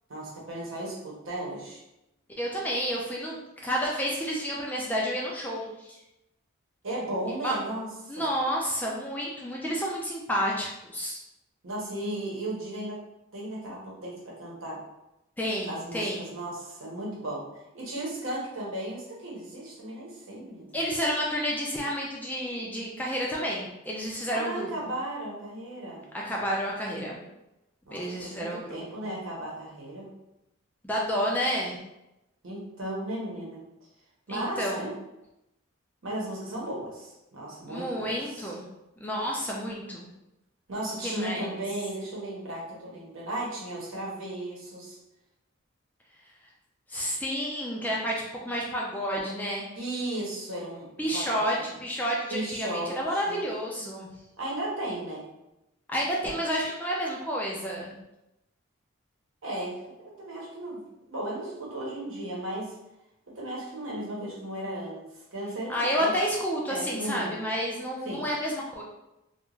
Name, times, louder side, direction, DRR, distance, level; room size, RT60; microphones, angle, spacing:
voice 1, 0.1-1.8 6.8-8.3 11.6-13.0 13.3-14.8 15.6-17.5 17.7-20.8 24.3-26.0 27.9-30.1 32.4-33.6 34.3-35.0 36.0-38.5 40.7-45.0 49.7-51.7 52.3-53.4 54.4-55.2 59.4-60.8 61.1-62.7 63.3-65.0 65.3-66.1 66.7-67.4 68.0-68.3, right 1 dB, 75° right, -4 dB, 0.9 m, -35 dB
voice 2, 2.4-6.0 7.4-7.6 8.1-11.2 15.4-16.3 20.7-24.9 26.1-27.2 27.9-29.2 30.8-31.8 34.3-34.9 37.7-38.7 39.0-40.1 41.0-41.6 46.9-49.7 51.0-54.1 55.9-57.9 65.7-68.8, equal, 10° left, -3 dB, 0.3 m, -30 dB
2.4 x 2.3 x 3.0 m, 0.92 s
head